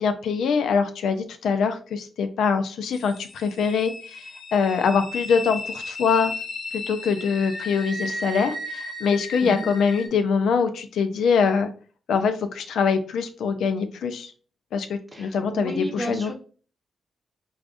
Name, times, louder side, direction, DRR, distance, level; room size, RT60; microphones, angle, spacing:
voice 1, 0.0-3.9 4.5-6.3 6.7-11.7 12.1-14.3 14.7-16.3, left 5 dB, 90° left, 8 dB, 0.4 m, -23 dB
sound 1, 2.9-10.1, left 2 dB, 55° left, 0.9 m, -35 dB
voice 2, 15.1-16.3, right 1 dB, 10° right, 2 dB, 0.9 m, -32 dB
4.8 x 2.4 x 2.5 m, 0.39 s
cardioid pair, 120°, 0 cm